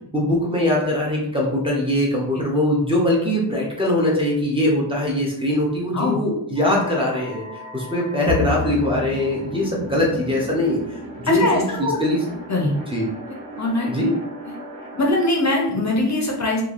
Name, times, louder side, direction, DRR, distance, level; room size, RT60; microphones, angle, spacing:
voice 1, 0.1-7.5 7.7-12.2 12.9-13.1 13.9-14.1, left 1 dB, 10° right, -3 dB, 0.5 m, -21 dB
sound 1, 6.5-15.1, right 1 dB, 70° right, 1.1 m, -37 dB
Bowed string instrument, 8.3-11.8, left 5 dB, 35° right, 1.2 m, -33 dB
voice 2, 11.3-11.9 12.5-12.8 13.6-13.9 14.5-14.6 14.9-16.6, left 2 dB, 40° left, 0 dB, 0.5 m, -21 dB
3.1 x 2.3 x 2.4 m, 0.76 s
wide cardioid pair, 150°, 45 cm